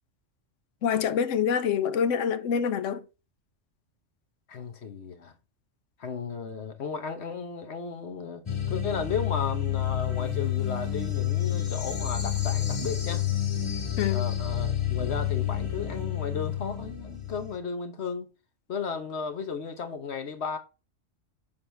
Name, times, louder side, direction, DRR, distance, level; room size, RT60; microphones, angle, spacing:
voice 1, 0.8-3.0 14.0-14.2, left 7 dB, 85° left, 1.0 m, -26 dB
voice 2, 4.5-5.3 6.0-8.4 8.7-13.2 14.1-18.3 18.7-20.6, left 5 dB, 65° left, 1.3 m, -34 dB
sound 1, 8.5-17.6, left 11 dB, 30° left, 0.9 m, -29 dB
7.1 x 4.8 x 3.4 m
omnidirectional pair, 1.3 m